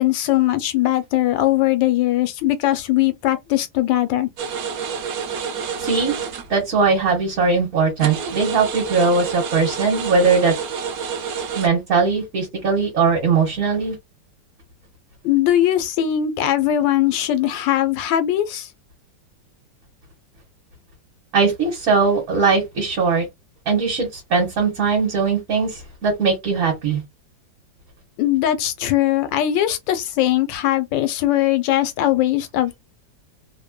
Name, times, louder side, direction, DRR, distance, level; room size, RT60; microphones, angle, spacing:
voice 1, 0.0-4.3 15.2-18.7 28.2-32.8, left 13 dB, 80° left, 1.3 m, -20 dB
sound 1, 4.4-6.7 7.0-7.1 7.6-7.7 8.0-11.7, right 6 dB, 65° right, 0.9 m, -29 dB
voice 2, 5.8-6.1 6.5-10.5 11.5-14.0 21.3-23.3 23.7-27.0, right 4 dB, 50° right, 1.3 m, -20 dB
3.1 x 2.1 x 2.2 m
omnidirectional pair, 2.0 m